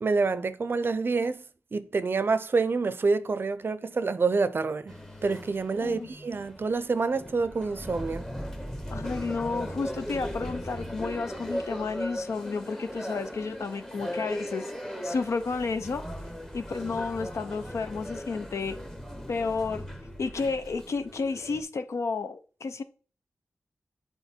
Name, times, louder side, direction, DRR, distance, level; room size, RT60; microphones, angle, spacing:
voice 1, 0.0-1.4 1.7-4.9 5.2-8.2, right 4 dB, 45° right, 0.5 m, -27 dB
sound 1, 4.9-21.6, equal, 10° left, 0.9 m, -38 dB
voice 2, 8.9-14.7 15.0-16.0 16.5-18.8 19.3-19.8 20.2-22.8, left 4 dB, 70° left, 0.6 m, -31 dB
8.1 x 3.9 x 4.3 m
wide cardioid pair, 120°, 5 cm